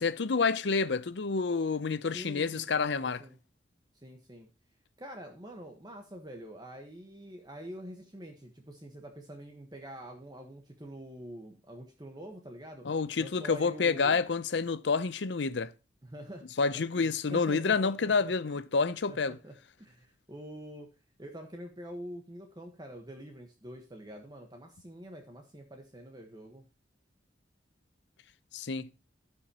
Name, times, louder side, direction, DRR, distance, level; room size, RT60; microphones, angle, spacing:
voice 1, 0.0-3.2 12.8-15.7 16.6-19.4 28.5-28.9, left 4 dB, 75° left, 0.6 m, -28 dB
voice 2, 2.1-3.4 4.0-4.5 5.0-12.9 13.2-14.2 16.0-16.5 16.7-18.3 19.1-20.9 21.2-26.6, equal, 25° right, 1.2 m, -46 dB
16.0 x 5.7 x 2.9 m
head